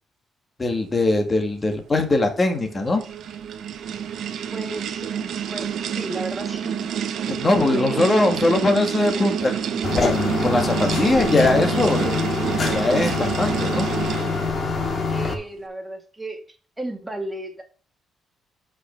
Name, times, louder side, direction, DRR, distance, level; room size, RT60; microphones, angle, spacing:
voice 1, 0.6-3.0 7.3-12.2 12.7-14.2, left 2 dB, 30° left, 4 dB, 1.8 m, -21 dB
sound 1, 2.5-14.6, right 8 dB, 70° right, 0.9 m, -28 dB
voice 2, 4.5-6.9 7.8-8.4 15.1-16.4 16.8-17.6, right 1 dB, 10° right, 2 dB, 2.1 m, -34 dB
sound 2, 9.8-15.3, left 4 dB, 45° left, 2.0 m, -25 dB
5.9 x 5.5 x 5.8 m, 0.40 s
cardioid pair, 90°, 0 cm